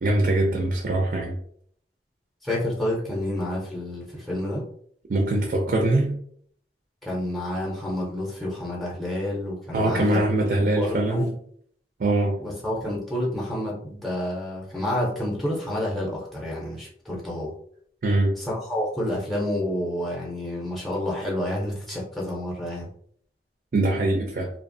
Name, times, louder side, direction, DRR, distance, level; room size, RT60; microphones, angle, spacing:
voice 1, 0.0-1.4 5.1-6.2 9.7-11.3 12.0-12.3 18.0-18.3 23.7-24.5, right 2 dB, 50° right, 1 dB, 0.4 m, -22 dB
voice 2, 2.4-4.6 7.0-10.2 10.7-11.3 12.4-17.5 18.4-22.9, left 1 dB, ahead, -3 dB, 0.5 m, -29 dB
2.8 x 2.0 x 2.5 m, 0.63 s
head